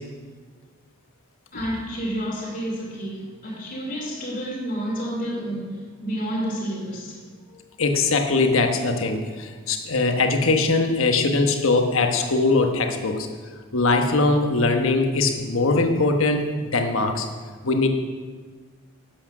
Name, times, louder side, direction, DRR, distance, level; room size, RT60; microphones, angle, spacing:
voice 1, 1.5-7.2, equal, 40° left, 2.7 m, -30 dB
voice 2, 7.8-13.3 13.7-17.3 17.6-17.9, left 3 dB, 75° left, 1.2 m, -21 dB
12.0 x 8.6 x 6.1 m
head